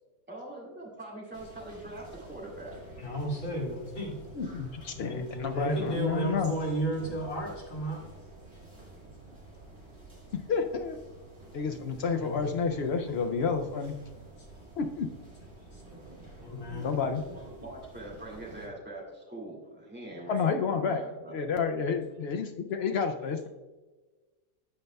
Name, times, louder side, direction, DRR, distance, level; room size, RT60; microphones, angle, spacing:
voice 1, 0.3-2.8 17.6-21.4, right 1 dB, 5° right, -4 dB, 2.0 m, -42 dB
sound 1, 1.3-18.7, right 2 dB, 40° right, 2.5 m, -49 dB
voice 2, 3.0-4.2 5.0-8.0 12.2-12.4 15.7-15.8 16.4-17.0, right 1 dB, 55° left, -3 dB, 2.5 m, -33 dB
voice 3, 4.3-6.5 10.5-11.0 11.5-13.9 14.8-15.1 16.8-17.2 20.3-21.0 21.3-23.5, left 5 dB, 80° left, 5 dB, 0.5 m, -30 dB
14.5 x 5.3 x 2.2 m, 1.3 s
omnidirectional pair, 1.6 m